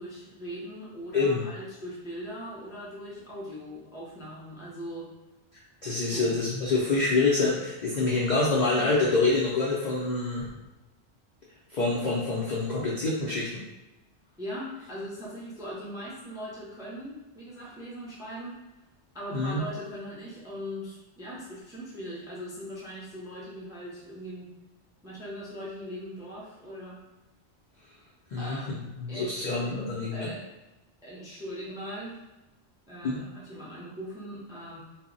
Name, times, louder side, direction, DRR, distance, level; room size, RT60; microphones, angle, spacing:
voice 1, 0.0-5.1 6.1-6.4 14.4-18.6 19.1-24.5 25.0-27.0 28.4-28.8 29.1-29.8 30.1-30.5 31.0-32.2 32.9-34.8, equal, 5° right, -6 dB, 0.4 m, -40 dB
voice 2, 1.1-1.4 5.8-10.5 11.7-13.5 19.3-19.6 28.3-28.6 29.0-30.3 33.0-33.2, left 3 dB, 60° left, -6 dB, 0.4 m, -26 dB
2.1 x 2.0 x 3.7 m, 1.0 s
omnidirectional pair, 1.2 m